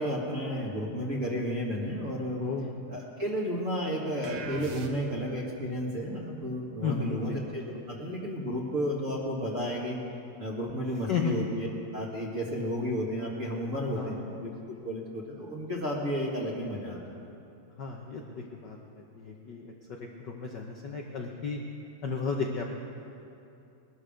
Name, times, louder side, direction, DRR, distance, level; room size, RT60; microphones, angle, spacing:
voice 1, 0.0-2.4 2.9-7.6 7.9-10.0 10.4-11.7 11.9-17.2, equal, 30° right, -3 dB, 1.7 m, -32 dB
voice 2, 2.4-2.7 6.8-7.4 11.1-11.4 13.9-14.2 17.8-19.7 20.2-21.6 22.0-22.8, left 5 dB, 80° left, 0 dB, 0.9 m, -33 dB
sound 1, 4.2-5.4, right 3 dB, 60° right, 1.4 m, -40 dB
20.0 x 13.0 x 5.1 m, 2.7 s
omnidirectional pair, 3.4 m